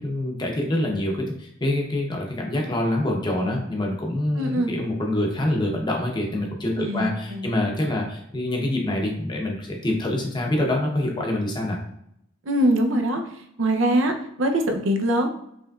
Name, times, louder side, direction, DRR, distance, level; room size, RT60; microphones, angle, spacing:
voice 1, 0.0-11.8, left 1 dB, 20° left, 0 dB, 0.8 m, -26 dB
voice 2, 4.4-4.7 6.8-7.5 12.5-13.2 13.6-15.3, right 1 dB, 75° right, 4 dB, 0.6 m, -23 dB
5.0 x 3.1 x 2.4 m, 0.74 s
head